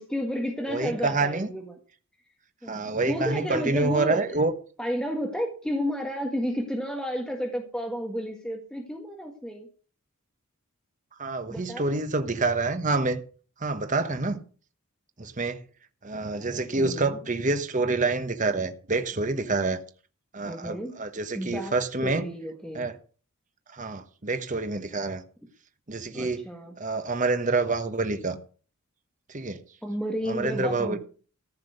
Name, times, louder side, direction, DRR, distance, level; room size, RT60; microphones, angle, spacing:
voice 1, 0.0-1.7 2.6-4.3 4.8-9.7 11.5-12.0 16.3-17.2 20.4-21.0 21.3-21.7 22.0-22.9 26.1-26.7 29.8-31.0, equal, 5° left, 1.7 m, -32 dB
voice 2, 0.7-1.5 2.7-4.5 11.2-13.2 13.6-14.4 15.2-15.6 16.0-19.8 20.3-22.2 22.7-23.0 23.7-25.2 25.9-26.4 26.8-28.4 29.3-29.6 30.3-31.0, right 3 dB, 35° right, 1.2 m, -27 dB
14.5 x 5.9 x 8.0 m
head